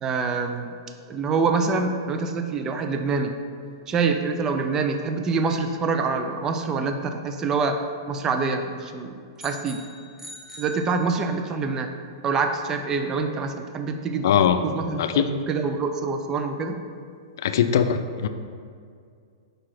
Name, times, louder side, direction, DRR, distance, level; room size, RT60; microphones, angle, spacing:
voice 1, 0.0-0.7 1.1-3.3 3.9-9.2 9.4-9.8 10.6-11.9 12.2-14.3 14.6-16.8, right 4 dB, 25° right, 6 dB, 0.5 m, -26 dB
sound 1, 9.4-11.6, equal, 5° right, 0.9 m, -44 dB
voice 2, 14.2-14.6 15.0-15.3 17.4-18.3, left 8 dB, 65° left, 9 dB, 0.5 m, -21 dB
5.1 x 4.7 x 5.8 m, 2.2 s
hypercardioid pair, 120°, 2 cm